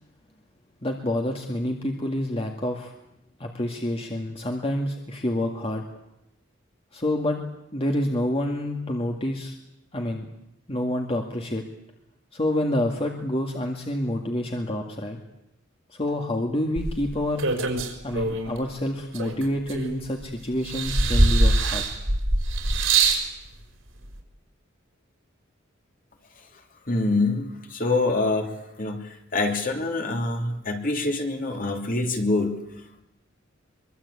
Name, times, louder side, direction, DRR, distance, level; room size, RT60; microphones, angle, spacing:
voice 1, 0.8-2.9 3.4-5.8 6.9-7.4 7.7-9.6 9.9-10.3 10.7-11.6 12.3-15.2 15.9-17.4 18.0-21.8, left 1 dB, 30° left, 2 dB, 2.1 m, -28 dB
sound 1, 16.8-18.6 19.1-20.2 20.6-23.3 24.2-24.3, right 2 dB, 80° right, 5.0 m, -23 dB
voice 2, 26.9-32.5, left 2 dB, 45° left, 3 dB, 3.1 m, -25 dB
24.0 x 23.5 x 8.6 m, 0.86 s
head